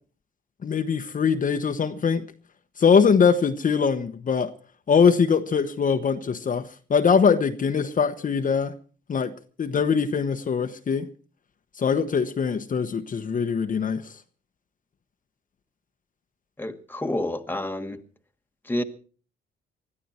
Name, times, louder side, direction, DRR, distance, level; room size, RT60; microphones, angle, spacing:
voice 1, 0.6-2.2 2.8-4.5 4.9-8.7 9.1-9.3 9.6-11.1 11.8-14.0, left 6 dB, 40° left, 1.1 m, -22 dB
voice 2, 16.6-18.0 18.6-18.8, left 1 dB, 10° left, 1.6 m, -29 dB
20.0 x 13.5 x 4.4 m
cardioid pair, 90°, 20 cm